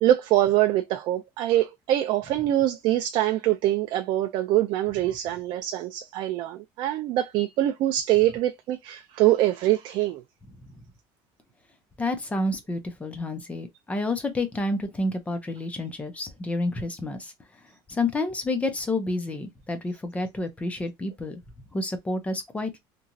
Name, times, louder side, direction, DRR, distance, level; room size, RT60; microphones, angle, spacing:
voice 1, 0.0-10.2, right 13 dB, 60° right, 0.4 m, -24 dB
voice 2, 12.0-17.3 17.9-21.4 21.7-22.8, left 2 dB, 15° left, 0.6 m, -29 dB
2.9 x 2.4 x 2.6 m
cardioid pair, 140°, 9 cm